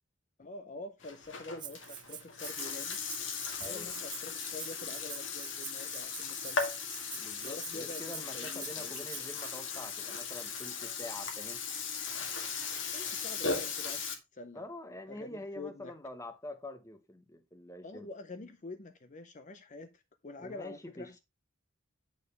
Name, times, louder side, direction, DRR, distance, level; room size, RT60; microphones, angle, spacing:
voice 1, 0.4-3.0 3.6-6.6 7.4-9.1 12.7-14.0 14.3-14.6 15.1-15.9 17.8-21.2, left 3 dB, 35° left, 0.6 m, -46 dB
Burping eructation, 1.0-14.1, left 5 dB, 65° left, 1.6 m, -38 dB
Rattle (instrument), 1.6-9.5, right 10 dB, 20° right, 0.4 m, -47 dB
voice 2, 3.6-3.9 7.2-11.6 14.5-18.1 20.4-21.2, left 1 dB, 15° left, 0.9 m, -46 dB
8.8 x 3.8 x 5.3 m
head